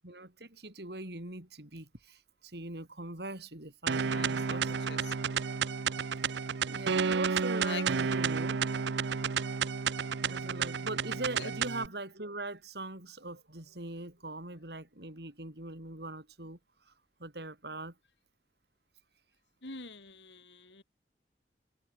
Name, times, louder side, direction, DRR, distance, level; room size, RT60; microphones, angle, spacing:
voice 1, 0.0-4.7 6.7-8.6 10.2-16.6 16.9-17.0 17.2-17.9, right 2 dB, 65° right, 4.4 m, -41 dB
sound 1, 3.9-11.9, right 6 dB, 80° right, 0.6 m, -31 dB
voice 2, 4.1-5.4 7.5-7.8 8.1-8.3 11.3-11.5 19.6-20.8, left 4 dB, 90° left, 7.5 m, -45 dB
head